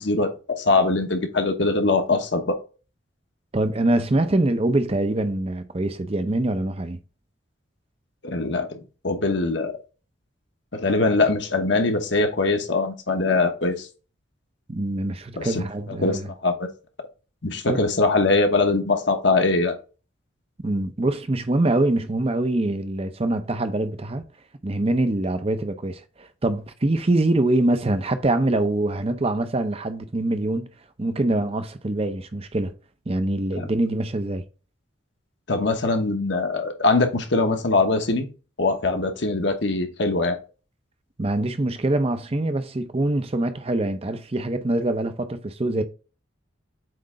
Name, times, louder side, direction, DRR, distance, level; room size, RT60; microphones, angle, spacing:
voice 1, 0.0-2.6 8.2-8.8 9.0-9.8 10.7-13.9 15.4-15.7 16.0-16.7 17.4-19.7 33.5-33.7 35.5-38.3 38.6-40.4, left 3 dB, 60° left, 1.1 m, -22 dB
voice 2, 3.5-7.0 14.7-16.3 17.7-17.8 20.6-24.2 24.6-30.7 31.0-32.7 33.1-34.4 41.2-45.8, right 2 dB, 30° right, 0.6 m, -24 dB
7.8 x 3.2 x 3.7 m
head